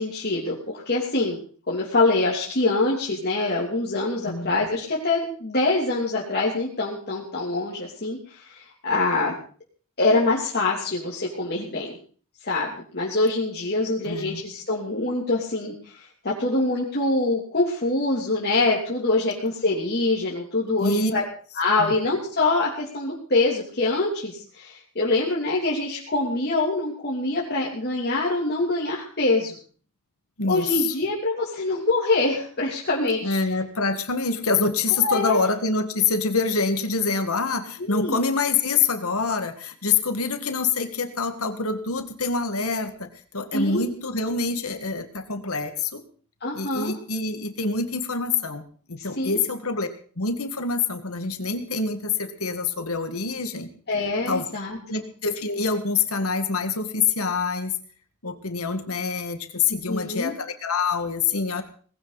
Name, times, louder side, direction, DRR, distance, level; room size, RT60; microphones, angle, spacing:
voice 1, 0.0-1.4 1.7-9.3 10.0-12.0 12.4-21.2 21.6-29.5 30.5-33.4 35.0-35.4 37.8-38.2 43.5-43.9 46.4-46.9 49.2-49.4 53.9-55.0 59.7-60.3, left 2 dB, 50° left, -4 dB, 3.0 m, -25 dB
voice 2, 14.0-14.4 20.8-21.1 21.8-22.0 30.4-30.9 33.2-46.0 46.5-49.9 50.2-53.7 54.3-54.5 54.9-57.7 58.2-61.6, left 4 dB, 70° left, 8 dB, 1.8 m, -26 dB
19.5 x 16.5 x 4.1 m, 0.43 s
head